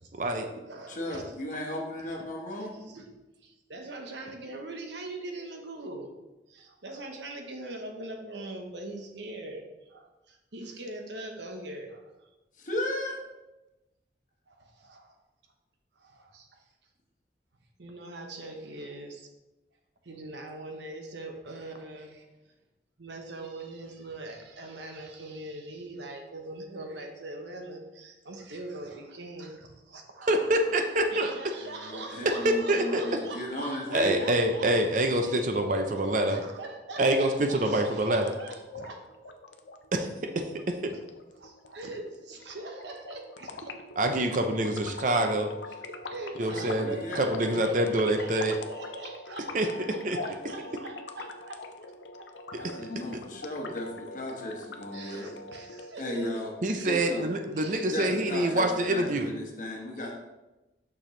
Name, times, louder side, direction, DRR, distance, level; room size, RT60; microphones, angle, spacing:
voice 1, 0.0-1.3 2.0-2.3 2.6-6.1 6.5-12.3 14.5-15.1 16.0-16.6 17.8-19.3 20.0-22.3 23.0-30.8 31.1-34.7 35.2-39.0 40.9-41.0 41.4-43.8 45.9-51.9 52.2-52.8 54.9-57.1 57.3-57.9 58.4-58.6, right 2 dB, 80° right, 3 dB, 1.0 m, -42 dB
voice 2, 0.9-2.7 12.6-13.2 31.6-34.3 46.5-47.6 52.6-55.4 56.0-56.5 56.8-57.3 57.8-60.1, left 1 dB, 45° left, 0 dB, 1.2 m, -35 dB
voice 3, 30.2-31.3 32.3-33.0 33.9-36.4 37.0-38.3 39.9-40.1 40.3-40.9 44.0-45.5 46.4-48.6 49.5-50.2 52.5-53.2 56.6-59.3, right 1 dB, 45° right, 5 dB, 0.6 m, -26 dB
sound 1, 37.9-55.9, left 3 dB, 85° left, 0.6 m, -43 dB
6.4 x 6.1 x 3.2 m, 1.1 s
head